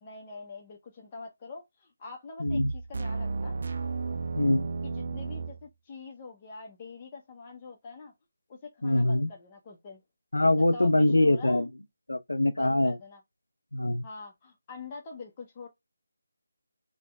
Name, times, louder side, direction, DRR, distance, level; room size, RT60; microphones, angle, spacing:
voice 1, 0.0-3.6 4.8-8.1 8.5-10.0 10.7-11.7 12.6-13.2 14.0-15.7, left 3 dB, 25° left, 0.6 m, -44 dB
voice 2, 2.4-2.7 4.4-4.7 8.8-9.3 10.3-11.7 12.1-13.0 13.7-14.0, left 1 dB, 80° left, 0.4 m, -24 dB
sound 1, 2.5-5.7, right 4 dB, 55° right, 0.3 m, -33 dB
3.3 x 2.1 x 3.3 m
figure-of-eight pair, 155°, 0 cm